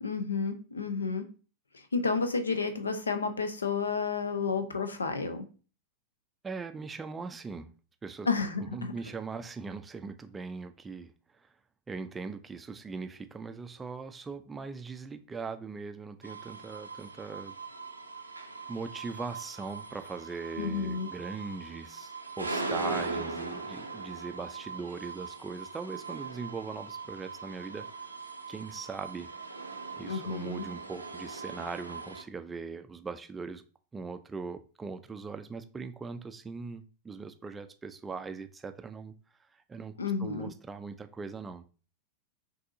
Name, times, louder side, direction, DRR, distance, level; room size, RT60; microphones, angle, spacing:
voice 1, 0.0-1.3 1.9-5.4 8.3-8.9 20.6-21.1 30.0-30.6 40.0-40.5, left 4 dB, 75° left, 0.5 m, -31 dB
voice 2, 6.4-7.7 8.0-8.3 8.6-11.1 11.4-11.5 11.9-17.5 18.7-22.1 22.4-27.9 28.5-29.3 30.0-33.6 33.9-39.1 39.5-41.6, right 4 dB, 15° right, 0.4 m, -40 dB
sound 1, 16.2-32.2, right 3 dB, 85° right, 0.5 m, -40 dB
5.8 x 2.7 x 2.6 m
figure-of-eight pair, 90°, 0 cm